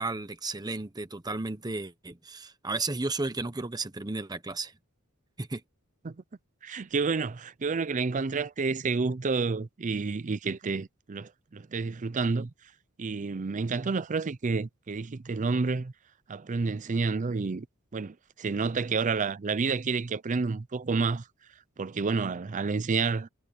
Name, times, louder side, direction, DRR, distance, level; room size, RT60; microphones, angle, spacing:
voice 1, 0.0-4.7 5.4-5.6, right 3 dB, 20° right, 1.0 m, -33 dB
voice 2, 6.6-12.5 13.0-15.9 16.3-17.7 17.9-21.2 21.8-23.3, right 4 dB, 35° right, 0.5 m, -29 dB
head